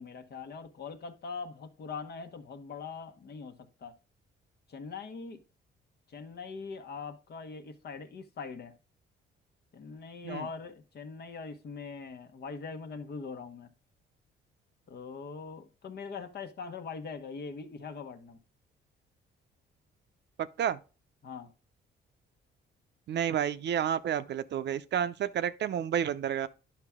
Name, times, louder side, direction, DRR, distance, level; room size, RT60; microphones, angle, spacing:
voice 1, 0.0-4.0 4.7-5.4 6.1-8.7 9.7-13.7 14.9-18.4 21.2-21.5, left 5 dB, 55° left, 1.2 m, -42 dB
voice 2, 23.1-26.5, right 9 dB, 60° right, 0.7 m, -30 dB
9.9 x 5.9 x 3.6 m
cardioid pair, 90°, 20 cm